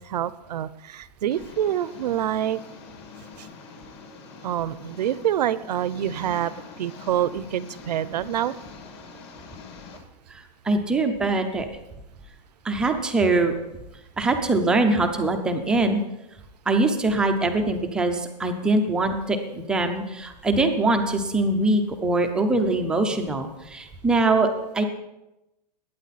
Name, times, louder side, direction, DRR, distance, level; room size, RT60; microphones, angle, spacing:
voice 1, 0.0-2.6 3.4-3.5 4.4-6.5 6.8-8.5, right 11 dB, 75° right, 17 dB, 0.7 m, -26 dB
Engine, 1.3-10.0, left 5 dB, 40° left, 2.3 m, -44 dB
voice 2, 10.3-11.7 12.6-13.5 14.2-16.0 16.7-24.8, right 2 dB, 5° right, 5 dB, 0.5 m, -23 dB
20.0 x 9.3 x 4.1 m, 0.94 s
supercardioid pair, 180°, 21 cm